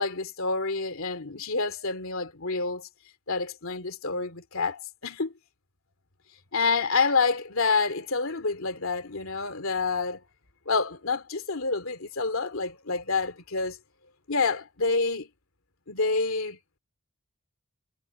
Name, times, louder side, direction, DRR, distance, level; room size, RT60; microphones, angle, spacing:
voice 1, 0.0-2.9 3.3-5.3 6.5-10.2 10.7-13.8 14.3-15.3 15.9-16.6, left 4 dB, 75° left, 2.5 m, -28 dB
head